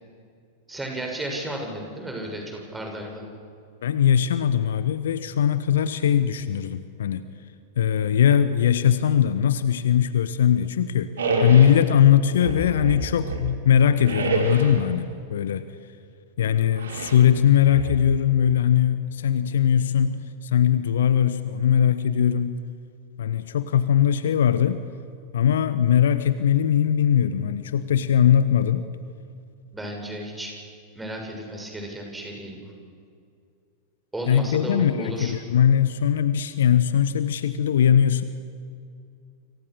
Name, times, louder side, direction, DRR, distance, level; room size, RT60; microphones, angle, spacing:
voice 1, 0.7-3.2 29.7-30.5 30.9-32.7 34.1-35.3, right 1 dB, 10° right, 1 dB, 7.2 m, -33 dB
voice 2, 3.8-7.2 7.8-11.1 11.4-15.6 16.4-22.5 23.2-24.8 25.3-28.8 34.3-38.2, left 9 dB, 60° left, 13 dB, 1.1 m, -20 dB
sound 1, 11.2-11.8 12.3-13.5 14.0-14.9 16.8-17.2 17.6-18.3, right 3 dB, 65° right, 4.5 m, -28 dB
29.5 x 27.0 x 6.6 m, 2.3 s
figure-of-eight pair, 90°, 0 cm